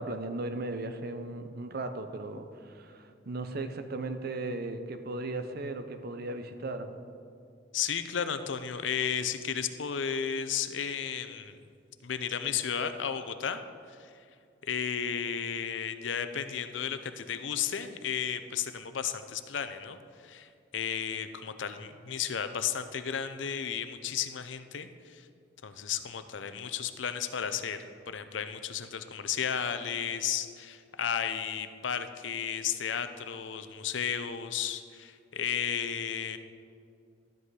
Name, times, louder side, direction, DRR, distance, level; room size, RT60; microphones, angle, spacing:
voice 1, 0.0-6.9, right 2 dB, 55° right, 8 dB, 0.7 m, -36 dB
voice 2, 7.7-11.6 12.0-13.6 13.9-14.1 14.6-25.3 25.6-36.4, left 8 dB, 70° left, 10 dB, 0.6 m, -33 dB
12.0 x 8.0 x 4.8 m, 2.4 s
head